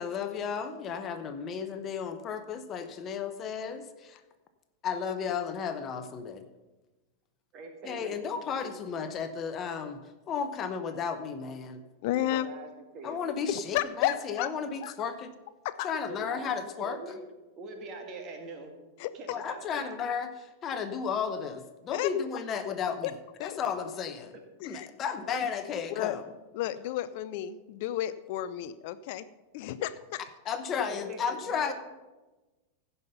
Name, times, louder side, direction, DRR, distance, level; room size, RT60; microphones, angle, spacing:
voice 1, 0.0-4.2 4.8-6.5 7.8-11.8 13.0-15.3 15.8-17.0 19.3-23.1 23.4-24.3 24.6-26.2 30.4-31.7, left 6 dB, 30° left, 9 dB, 0.8 m, -33 dB
voice 2, 7.5-8.5 12.2-12.7 12.9-13.2 16.1-17.2 17.5-18.7 19.1-19.9 30.9-31.7, right 3 dB, 35° right, 4 dB, 2.0 m, -42 dB
voice 3, 12.0-12.5 13.5-14.5 14.8-14.9 15.6-15.9 19.0-19.1 21.9-22.1 23.0-23.1 23.4-23.6 24.6-24.9 25.9-26.2 26.5-29.3 29.5-30.2, left 13 dB, 50° left, 15 dB, 0.4 m, -32 dB
16.0 x 5.5 x 5.5 m, 1.1 s
figure-of-eight pair, 90°, 0 cm